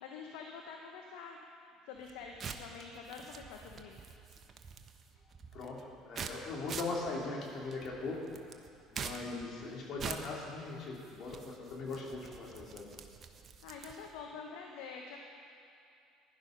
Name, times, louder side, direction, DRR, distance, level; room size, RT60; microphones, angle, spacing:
voice 1, 0.0-1.4 1.9-4.0 13.6-15.2, left 5 dB, 75° left, 1 dB, 1.2 m, -46 dB
sound 1, 2.0-14.2, right 6 dB, 45° right, 1.1 m, -46 dB
voice 2, 5.5-8.3 8.9-12.9, left 3 dB, 55° left, -3 dB, 3.5 m, -40 dB
15.5 x 11.5 x 5.4 m, 2.5 s
hypercardioid pair, 70°, 0 cm